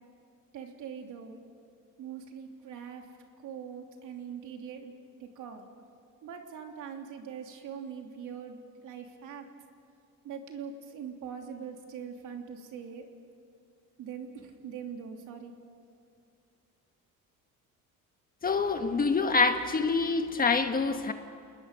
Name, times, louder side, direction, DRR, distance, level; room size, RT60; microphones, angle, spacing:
voice 1, 0.5-1.4 2.0-3.0 3.4-4.9 5.2-5.6 6.2-8.6 8.8-9.4 10.2-13.1 14.0-15.5, right 7 dB, 70° right, 3 dB, 3.0 m, -42 dB
voice 2, 18.4-21.1, left 4 dB, 25° left, 7 dB, 1.3 m, -26 dB
28.5 x 20.0 x 6.8 m, 2.4 s
cardioid pair, 140°, 32 cm